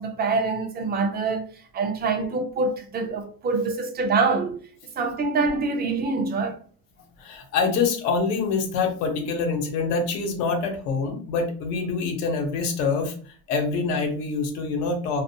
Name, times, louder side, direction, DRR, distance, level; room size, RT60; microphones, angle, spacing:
voice 1, 0.0-1.4 1.7-4.6 5.0-6.6, right 4 dB, 25° right, 0.3 m, -25 dB
voice 2, 7.2-13.1 13.5-15.2, left 4 dB, 90° left, 0.9 m, -25 dB
2.4 x 2.2 x 2.6 m
cardioid pair, 125°, 47 cm